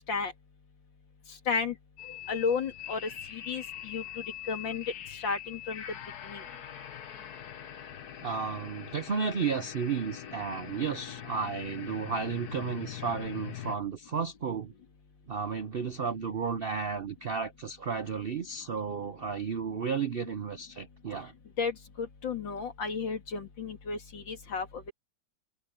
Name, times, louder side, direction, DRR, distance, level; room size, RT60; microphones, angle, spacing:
sound 1, 2.0-13.8, left 10 dB, 60° left, 1.6 m, -43 dB
voice 1, 2.3-3.0 3.3-4.8 5.2-5.8 6.2-6.4 21.6-24.9, left 5 dB, 85° left, 3.1 m, -33 dB
voice 2, 8.2-14.7 15.3-21.3, right 6 dB, 65° right, 0.5 m, -33 dB
omnidirectional pair, 2.0 m